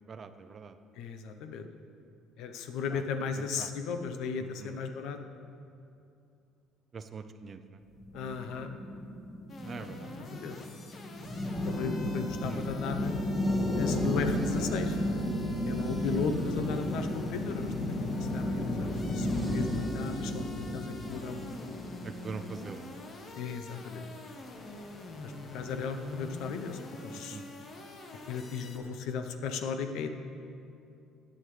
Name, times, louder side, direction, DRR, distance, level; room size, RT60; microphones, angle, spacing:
voice 1, 0.1-0.8 2.9-3.0 3.4-3.7 4.6-4.8 6.9-7.8 9.6-10.1 10.6-10.7 12.4-12.7 22.0-22.9 27.3-27.5, right 5 dB, 40° right, 10 dB, 0.6 m, -43 dB
voice 2, 1.0-1.6 2.4-5.2 8.1-8.7 10.3-10.6 11.7-13.1 13.7-15.2 15.7-21.4 23.3-24.0 25.2-27.4 28.3-30.1, left 5 dB, 75° left, 7 dB, 0.8 m, -36 dB
sound 1, 8.0-23.4, left 1 dB, 20° left, 1.6 m, -33 dB
sound 2, 9.5-28.8, left 2 dB, 45° left, 1.4 m, -47 dB
15.0 x 8.7 x 3.3 m, 2.6 s
supercardioid pair, 85°, 0 cm